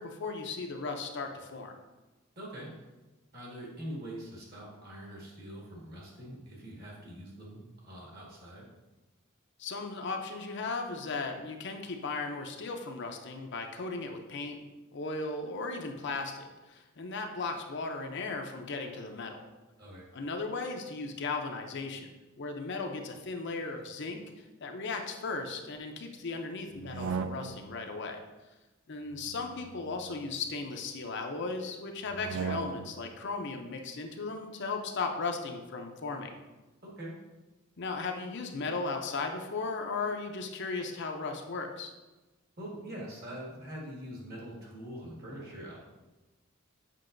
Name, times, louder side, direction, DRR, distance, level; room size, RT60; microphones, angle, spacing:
voice 1, 0.0-1.8 9.6-14.6 14.9-19.4 20.1-22.1 22.4-28.2 28.9-36.4 37.8-41.9, left 3 dB, 55° left, 4 dB, 0.6 m, -36 dB
voice 2, 2.3-2.7 3.3-8.6 19.8-20.0 36.8-37.1 42.6-45.8, right 1 dB, 45° right, -3 dB, 1.7 m, -43 dB
sound 1, 26.7-27.8 29.1-30.7 32.1-33.1, right 5 dB, 70° right, 0.3 m, -38 dB
7.5 x 5.3 x 2.6 m, 1.1 s
head